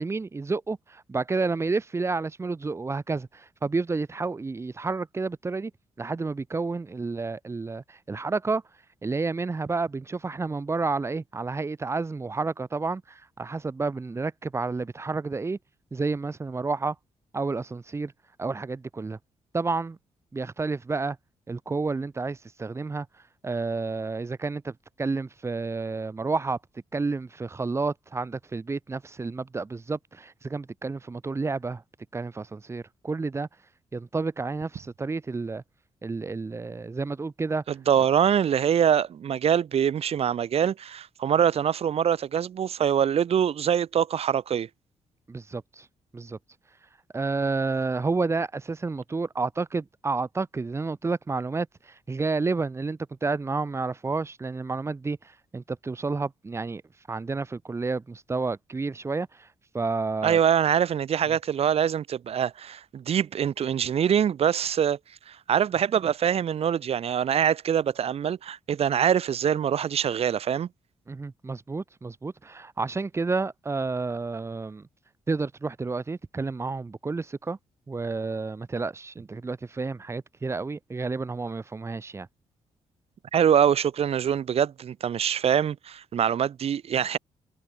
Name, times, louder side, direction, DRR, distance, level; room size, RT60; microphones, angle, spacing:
voice 1, 0.0-5.7 6.0-8.6 9.0-15.6 15.9-16.9 17.3-18.1 18.4-19.2 19.5-20.0 20.3-21.2 21.5-23.1 23.4-24.7 25.0-26.6 26.9-31.8 32.1-33.5 33.9-35.6 36.0-37.6 45.3-45.8 46.1-46.4 47.1-51.7 52.1-55.2 55.5-56.8 57.1-59.3 59.7-60.4 71.1-74.8 75.3-77.6 77.9-82.3, right 3 dB, 25° right, 5.0 m, -30 dB
voice 2, 37.7-44.7 60.2-65.0 65.3-70.7 83.3-87.2, right 8 dB, 60° right, 7.1 m, -24 dB
wide cardioid pair, 145°, 12 cm